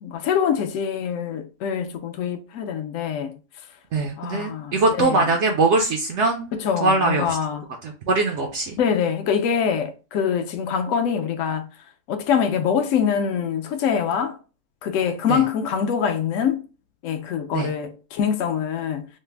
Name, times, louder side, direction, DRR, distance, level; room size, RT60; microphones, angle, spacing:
voice 1, 0.0-3.4 4.2-5.3 6.5-7.6 8.8-11.7 12.1-14.4 14.8-16.6 17.0-19.1, left 7 dB, 70° left, 0.9 m, -24 dB
voice 2, 3.9-6.5 6.8-7.4 7.8-8.8 15.3-15.4 17.5-17.7, right 3 dB, 65° right, 0.7 m, -22 dB
3.2 x 2.0 x 3.2 m
omnidirectional pair, 1.5 m